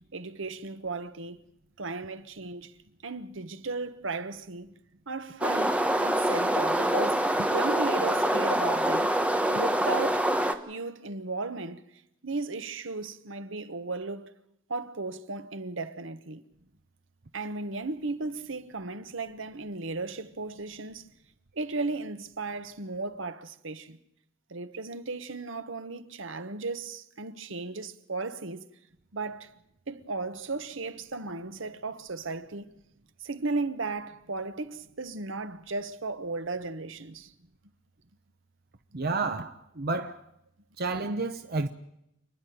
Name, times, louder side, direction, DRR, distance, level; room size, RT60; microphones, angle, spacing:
voice 1, 0.0-1.4 1.8-2.7 3.0-4.7 5.1-9.2 9.5-10.3 10.7-11.9 12.2-14.3 14.7-16.4 17.3-21.1 21.5-24.0 24.5-28.7 29.1-29.5 29.9-32.8 33.2-37.3, right 3 dB, 65° right, 1.2 m, -35 dB
sound 1, 5.4-10.5, right 1 dB, 5° right, 1.2 m, -25 dB
voice 2, 38.9-40.2 40.8-41.7, right 3 dB, 50° right, 0.9 m, -30 dB
28.0 x 10.5 x 9.3 m
head